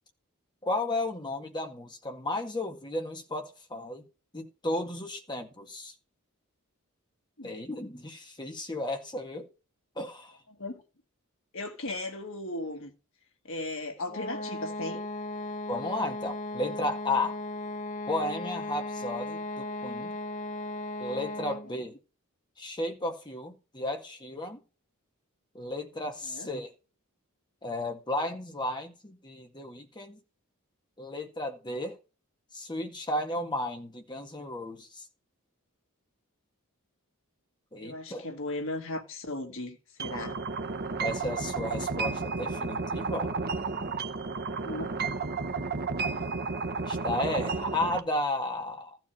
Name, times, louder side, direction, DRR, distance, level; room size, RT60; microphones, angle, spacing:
voice 1, 0.6-4.1 4.3-5.9 7.4-9.5 10.0-10.4 15.7-17.4 18.1-20.1 21.0-22.0 22.6-24.6 25.5-26.7 27.6-30.2 31.0-32.0 32.5-35.1 37.7-38.3 41.0-43.3 46.9-49.0, left 1 dB, 20° left, 1.9 m, -34 dB
voice 2, 11.5-12.9 13.4-15.0 26.3-26.5 37.8-40.4 44.5-44.9, left 2 dB, 65° left, 2.0 m, -36 dB
sound 1, 14.1-21.8, left 2 dB, 35° left, 0.8 m, -36 dB
sound 2, 40.0-48.0, right 4 dB, 45° right, 0.9 m, -32 dB
14.5 x 5.0 x 4.4 m
head